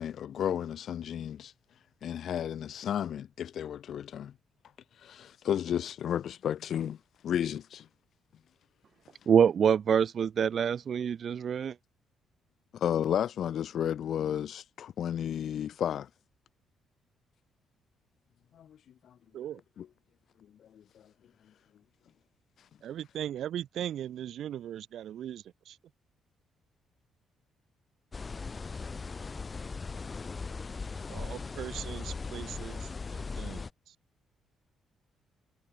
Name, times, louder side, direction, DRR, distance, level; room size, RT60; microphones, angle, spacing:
voice 1, 0.0-1.5 2.0-4.3 5.0-7.0 7.2-7.8 12.8-16.1 18.6-18.7, left 9 dB, 65° left, 2.8 m, -32 dB
voice 2, 9.3-11.7, right 7 dB, 55° right, 1.0 m, -25 dB
voice 3, 22.8-25.8 31.1-33.9, right 11 dB, 70° right, 2.2 m, -39 dB
sound 1, 28.1-33.7, left 4 dB, 30° left, 2.3 m, -38 dB
cardioid pair, 90°, 0 cm